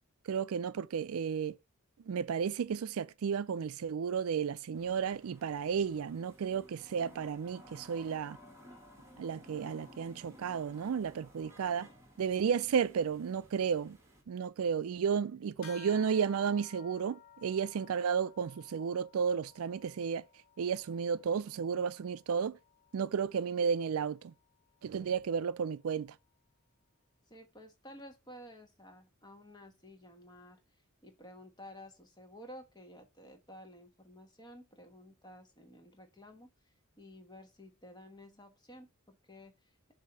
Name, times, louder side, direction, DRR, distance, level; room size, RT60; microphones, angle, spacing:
voice 1, 0.3-1.5 2.1-8.4 9.2-11.9 12.2-14.0 14.3-20.2 20.6-22.6 22.9-24.3 24.8-26.1, right 6 dB, 85° right, 0.4 m, -33 dB
sound 1, 4.7-14.2, equal, 15° right, 1.4 m, -56 dB
sound 2, 15.6-25.4, left 8 dB, 80° left, 1.4 m, -58 dB
voice 2, 27.3-30.6 31.0-39.9, equal, 20° left, 1.2 m, -53 dB
7.3 x 2.8 x 5.4 m
head